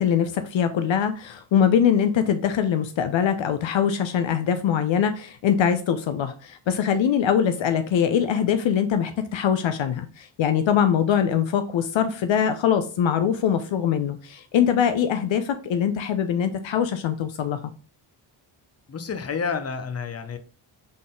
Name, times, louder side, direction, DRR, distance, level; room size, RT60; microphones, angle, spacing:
voice 1, 0.0-17.6, left 8 dB, 65° left, 0.6 m, -22 dB
voice 2, 18.9-20.4, left 5 dB, 30° left, 0.8 m, -29 dB
3.9 x 3.7 x 3.7 m
supercardioid pair, 45°, 50 cm